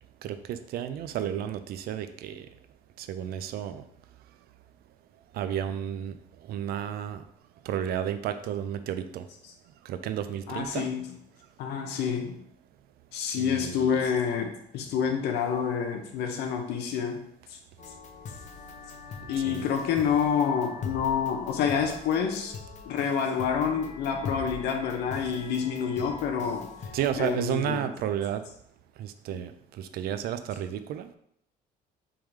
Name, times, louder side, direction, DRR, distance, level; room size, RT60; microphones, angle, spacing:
voice 1, 0.2-2.5 3.0-3.8 5.3-6.2 6.5-7.2 7.6-9.3 9.8-10.9 13.4-14.1 19.2-19.7 26.9-28.4 29.0-31.1, right 10 dB, 65° right, 10 dB, 0.4 m, -32 dB
voice 2, 10.5-11.0 11.6-12.3 13.1-17.2 17.5-17.6 19.3-22.6 22.9-26.7 27.2-27.8 29.3-29.4, left 7 dB, 80° left, 4 dB, 0.8 m, -28 dB
sound 1, 17.8-27.4, left 5 dB, 45° left, 0.7 m, -42 dB
3.6 x 3.0 x 4.8 m, 0.71 s
cardioid pair, 110°, 17 cm